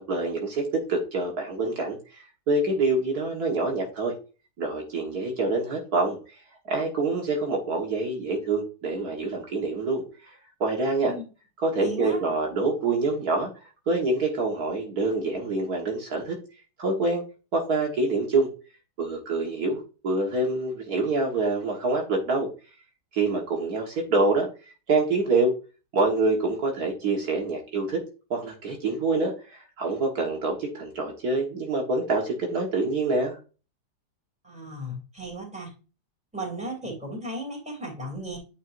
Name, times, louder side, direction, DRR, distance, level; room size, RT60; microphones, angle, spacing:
voice 1, 0.0-4.1 4.6-6.4 6.7-11.1 11.6-13.5 13.9-16.4 16.8-17.2 17.5-18.5 19.0-22.5 23.1-25.5 25.9-28.0 28.3-33.4, right 3 dB, 65° right, 0 dB, 1.9 m, -26 dB
voice 2, 11.8-12.2 34.4-35.7 36.3-38.4, right 1 dB, 5° right, 0 dB, 2.8 m, -35 dB
9.1 x 5.4 x 2.6 m, 0.33 s
omnidirectional pair, 1.8 m